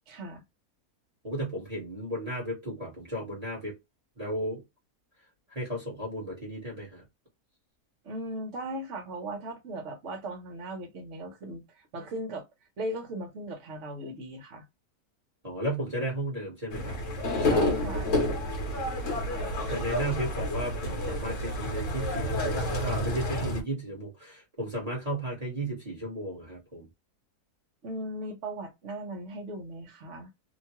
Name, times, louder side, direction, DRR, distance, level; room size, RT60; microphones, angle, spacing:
voice 1, 0.1-0.4 8.0-12.5 12.8-14.6 17.4-18.1 27.8-30.3, right 1 dB, 55° right, 1.1 m, -38 dB
voice 2, 1.2-3.8 4.2-4.6 5.5-7.0 15.4-17.0 19.7-26.9, right 1 dB, 25° right, 1.2 m, -34 dB
sound 1, 16.7-23.6, left 1 dB, 60° left, 1.2 m, -29 dB
3.0 x 2.2 x 2.8 m
omnidirectional pair, 1.6 m